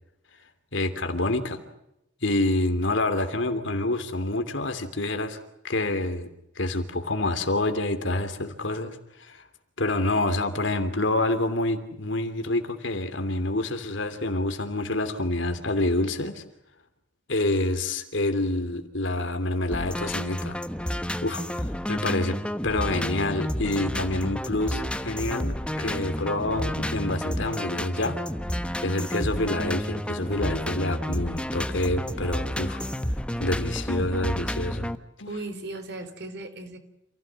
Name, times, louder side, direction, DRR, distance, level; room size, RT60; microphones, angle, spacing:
voice 1, 0.7-1.6 2.2-5.4 5.6-6.3 6.6-9.4 9.8-16.4 17.3-20.6 21.2-28.2 28.8-32.8 33.4-34.9 35.2-35.3, left 2 dB, 85° left, 8 dB, 3.0 m, -27 dB
sound 1, 19.7-35.0, equal, 5° left, 1.1 m, -30 dB
voice 2, 35.2-36.8, right 2 dB, 65° right, 8 dB, 4.0 m, -36 dB
28.5 x 16.5 x 9.0 m, 0.84 s
head